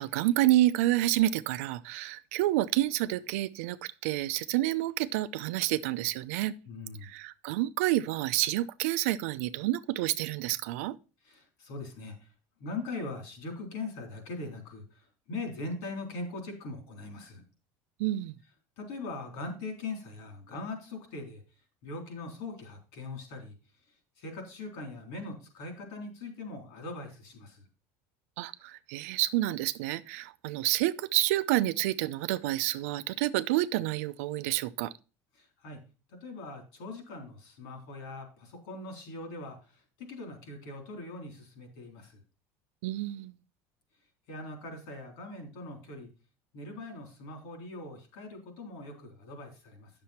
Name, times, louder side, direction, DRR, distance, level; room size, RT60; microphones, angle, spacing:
voice 1, 0.0-6.5 7.0-11.0 18.0-18.3 28.4-34.9 42.8-43.3, right 15 dB, 85° right, 0.6 m, -29 dB
voice 2, 6.7-7.1 11.2-12.3 12.6-17.4 18.8-21.4 21.8-23.6 24.2-27.7 35.4-35.8 36.1-42.2 44.3-46.1 46.5-49.9, left 2 dB, 75° left, 3.8 m, -41 dB
9.5 x 6.9 x 4.3 m
cardioid pair, 140°, 7 cm